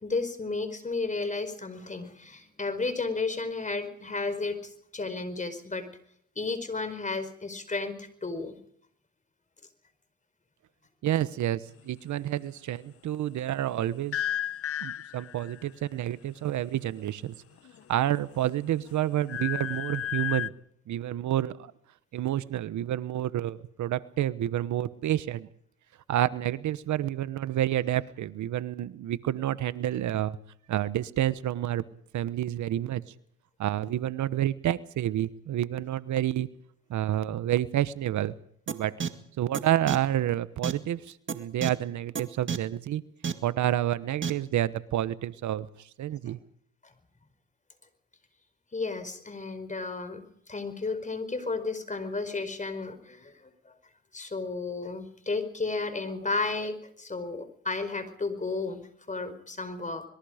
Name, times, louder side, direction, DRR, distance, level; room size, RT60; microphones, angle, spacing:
voice 1, 0.0-5.9 6.4-8.6 48.7-53.5 54.1-60.0, left 3 dB, 25° left, 10 dB, 4.8 m, -33 dB
voice 2, 11.0-14.2 14.8-17.4 17.9-20.5 20.9-21.7 22.1-25.5 26.1-30.4 30.7-31.8 32.1-33.0 33.6-36.5 36.9-38.4 38.7-38.9 39.4-43.0 43.4-45.7 46.0-46.4, right 12 dB, 70° right, 15 dB, 1.2 m, -29 dB
sound 1, 14.1-15.6 17.6-18.3 18.7-20.5, left 11 dB, 50° left, 0.9 m, -33 dB
sound 2, 38.7-38.8 39.0-39.1 39.5-39.6 39.9-40.0 40.6-40.7 41.3-41.4 41.6-41.7 42.2-42.3 42.5-42.6 43.2-43.3 44.2-44.3, right 6 dB, 40° right, 2.0 m, -28 dB
26.5 x 21.5 x 5.1 m, 0.65 s
cardioid pair, 90°, 30 cm